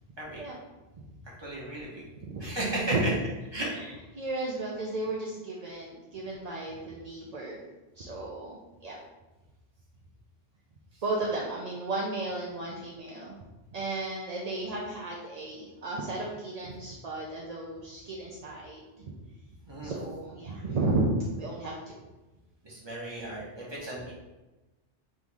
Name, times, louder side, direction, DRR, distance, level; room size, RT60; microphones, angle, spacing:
voice 1, 1.4-2.0 2.4-3.2 3.5-3.7 5.6-5.7 19.7-19.9 22.6-24.1, right 1 dB, 25° right, -5 dB, 1.1 m, -34 dB
voice 2, 3.7-7.6 8.0-9.0 11.0-13.3 13.7-19.0 19.8-22.0, right 2 dB, 50° right, -3 dB, 0.5 m, -34 dB
3.7 x 2.7 x 4.7 m, 1.1 s
omnidirectional pair, 1.2 m